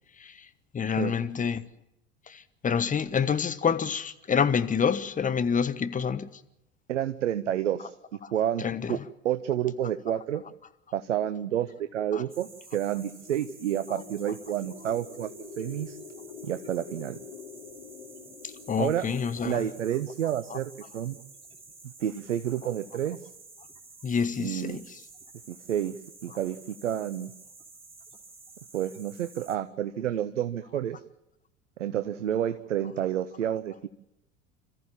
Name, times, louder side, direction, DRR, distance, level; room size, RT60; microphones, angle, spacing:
voice 1, 0.7-1.6 2.3-6.3 8.6-9.0 12.1-12.2 13.9-14.0 18.7-19.6 20.5-20.6 24.0-24.9, left 6 dB, 20° left, 1.2 m, -27 dB
voice 2, 6.9-7.9 8.3-9.0 9.2-10.4 10.9-15.3 15.6-16.0 16.4-17.2 18.8-19.1 19.4-21.2 21.8-23.3 24.4-24.8 25.5-26.0 26.2-27.3 28.7-31.0 31.8-33.9, right 10 dB, 80° right, 0.8 m, -30 dB
sound 1, 12.3-29.6, right 3 dB, 15° right, 3.1 m, -51 dB
sound 2, 13.1-21.2, left 6 dB, 75° left, 3.0 m, -47 dB
26.5 x 14.5 x 7.2 m
figure-of-eight pair, 75°, 36 cm